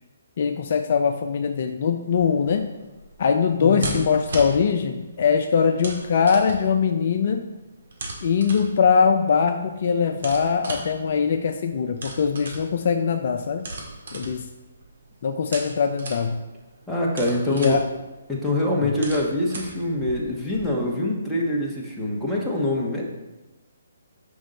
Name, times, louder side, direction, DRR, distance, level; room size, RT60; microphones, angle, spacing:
voice 1, 0.4-2.7 3.2-7.5 8.2-13.7 14.1-14.4 15.2-16.4 17.5-17.8 18.8-18.9, left 6 dB, 50° left, 6 dB, 0.4 m, -22 dB
sound 1, 2.1-20.6, right 2 dB, 60° right, 1.7 m, -38 dB
voice 2, 3.6-4.1 16.9-17.8 18.3-23.0, left 1 dB, 5° left, -5 dB, 1.2 m, -25 dB
6.2 x 5.2 x 4.0 m, 1.0 s
figure-of-eight pair, 140°, 0 cm